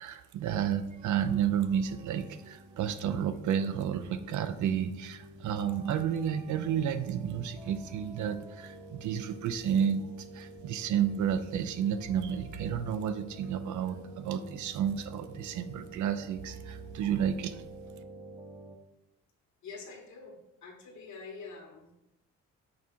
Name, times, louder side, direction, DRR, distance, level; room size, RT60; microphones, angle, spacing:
voice 1, 0.0-17.6, right 8 dB, 75° right, 11 dB, 0.6 m, -31 dB
sound 1, 1.0-18.8, right 1 dB, 20° right, 0.7 m, -49 dB
voice 2, 19.6-22.0, left 4 dB, 70° left, 1 dB, 1.7 m, -46 dB
6.0 x 3.7 x 4.4 m, 0.87 s
cardioid pair, 90°, 30 cm